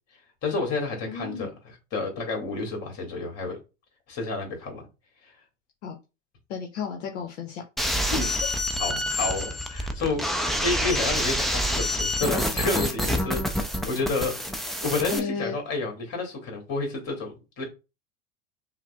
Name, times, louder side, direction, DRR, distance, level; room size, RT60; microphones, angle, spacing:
voice 1, 0.4-3.6 4.1-4.8 8.2-8.3 8.8-14.3 14.8-17.6, left 3 dB, 40° left, 2 dB, 1.7 m, -30 dB
voice 2, 1.0-1.5 5.8-6.0 6.5-7.6 7.9-8.2 15.1-15.5, left 6 dB, 70° left, 3 dB, 0.8 m, -33 dB
sound 1, 7.8-15.2, equal, ahead, 0.4 m, -27 dB
5.6 x 2.1 x 2.3 m, 0.28 s
hypercardioid pair, 80°, 38 cm